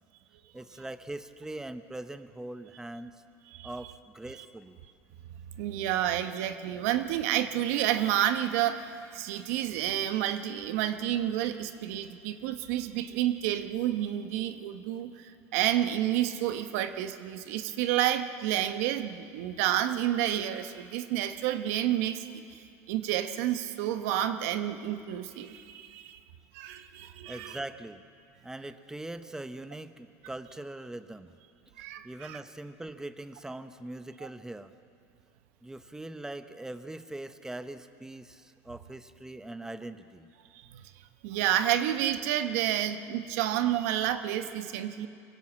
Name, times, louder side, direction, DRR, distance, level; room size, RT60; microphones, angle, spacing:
voice 1, 0.5-3.2 3.6-4.8 27.3-28.0 28.4-31.3 31.8-34.7 35.6-40.3, right 2 dB, 5° right, 10 dB, 1.0 m, -41 dB
voice 2, 5.6-22.2 22.5-22.6 22.9-26.2 26.5-27.6 31.8-32.4 40.7-40.8 41.2-45.1, right 12 dB, 80° right, 9 dB, 1.1 m, -30 dB
24.5 x 16.5 x 7.6 m, 2.4 s
supercardioid pair, 95°, 8 cm